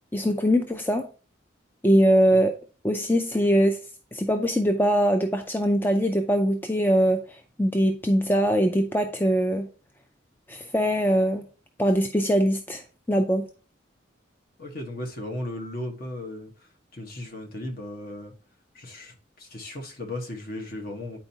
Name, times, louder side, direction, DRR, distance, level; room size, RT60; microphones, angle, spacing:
voice 1, 0.1-1.1 1.8-2.5 2.8-3.8 4.1-7.2 7.6-9.7 10.5-11.4 11.8-13.5, equal, 10° left, 0.4 m, -22 dB
voice 2, 14.6-16.5 16.9-18.3 18.7-21.2, left 1 dB, 50° left, 1.3 m, -36 dB
9.1 x 4.5 x 2.8 m
head